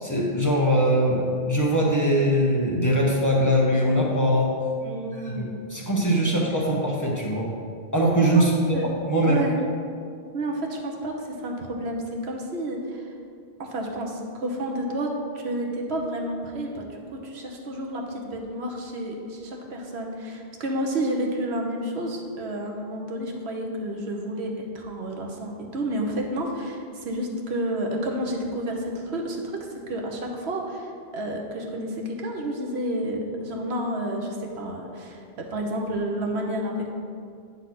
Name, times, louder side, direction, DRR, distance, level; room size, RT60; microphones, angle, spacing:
voice 1, 0.0-4.5 5.1-7.5 7.9-8.8 9.0-9.4, equal, 20° left, -3 dB, 1.0 m, -22 dB
voice 2, 4.8-5.6 6.1-6.4 8.3-8.4 8.7-8.9 9.2-9.6 10.3-13.1 13.6-36.9, right 1 dB, 80° right, 1 dB, 1.2 m, -30 dB
8.9 x 4.0 x 5.9 m, 2.3 s
omnidirectional pair, 1.1 m